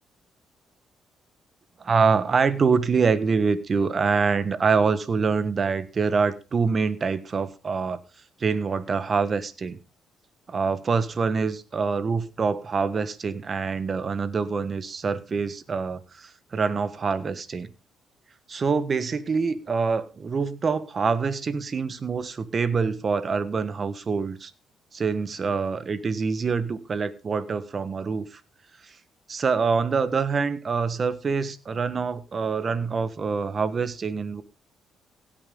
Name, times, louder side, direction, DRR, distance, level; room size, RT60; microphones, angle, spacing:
voice 1, 1.8-8.0 8.4-9.8 10.5-17.7 18.5-24.5 24.9-28.4 29.3-34.4, right 5 dB, 40° right, 1.3 m, -25 dB
16.5 x 9.0 x 3.8 m
cardioid pair, 90°, 0 cm